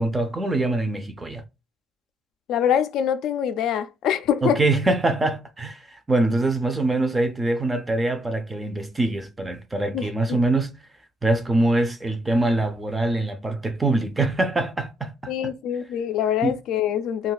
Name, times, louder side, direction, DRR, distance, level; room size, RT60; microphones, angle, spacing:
voice 1, 0.0-1.4 4.4-10.7 11.2-15.3 16.4-16.5, right 2 dB, 15° right, 0.5 m, -24 dB
voice 2, 2.5-4.6 9.9-10.4 15.3-17.3, left 9 dB, 70° left, 0.3 m, -24 dB
2.5 x 2.3 x 3.9 m
cardioid pair, 145°, 0 cm